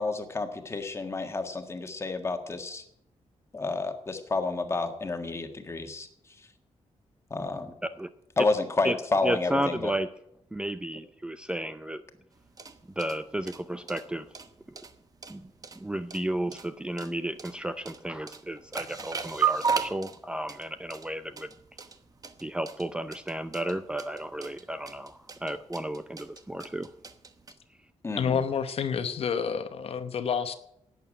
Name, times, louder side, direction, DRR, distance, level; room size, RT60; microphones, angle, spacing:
voice 1, 0.0-2.8 3.5-6.1 7.3-7.7 8.4-9.9 28.0-28.4, left 3 dB, 25° left, 6 dB, 1.6 m, -30 dB
voice 2, 9.2-10.1 10.5-12.0 13.0-14.3 15.3-15.5 15.8-21.5 22.4-26.9, right 1 dB, 10° right, 10 dB, 0.5 m, -33 dB
sound 1, 12.4-27.5, right 6 dB, 30° right, 1.0 m, -36 dB
voice 3, 28.2-30.5, left 7 dB, 55° left, 10 dB, 0.9 m, -29 dB
11.5 x 9.2 x 9.7 m, 0.77 s
wide cardioid pair, 170°, 12 cm